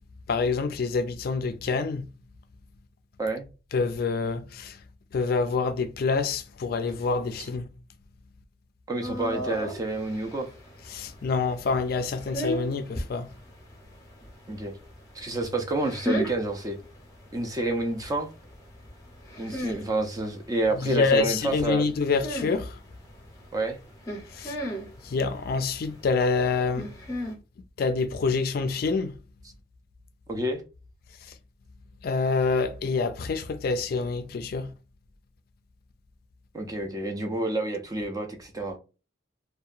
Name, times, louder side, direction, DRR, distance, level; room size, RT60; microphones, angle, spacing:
voice 1, 0.3-2.1 3.7-4.8 5.1-7.7 10.9-13.3 20.8-22.8 24.3-24.6 25.0-26.9 27.8-29.1 31.2-31.3 32.0-34.7, left 4 dB, 55° left, 0.4 m, -26 dB
voice 2, 8.9-10.5 14.5-14.7 15.1-16.8 17.3-18.3 19.4-21.8 23.5-23.8 30.3-30.6 36.5-38.8, right 2 dB, 20° right, 0.4 m, -29 dB
sound 1, 9.0-27.4, equal, 20° left, 0.7 m, -38 dB
2.7 x 2.2 x 2.4 m
head